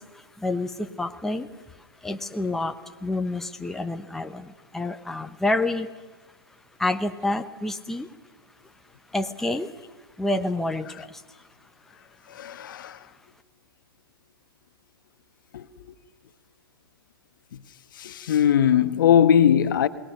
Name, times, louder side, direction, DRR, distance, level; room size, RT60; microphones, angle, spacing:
voice 1, 0.0-6.0 6.8-8.2 8.6-8.7 9.1-9.7 10.2-11.4, left 2 dB, 5° left, 0.9 m, -29 dB
voice 2, 12.3-13.0 15.5-15.7 18.0-19.9, left 9 dB, 55° left, 1.3 m, -20 dB
28.0 x 20.0 x 6.6 m
hypercardioid pair, 120°, 13 cm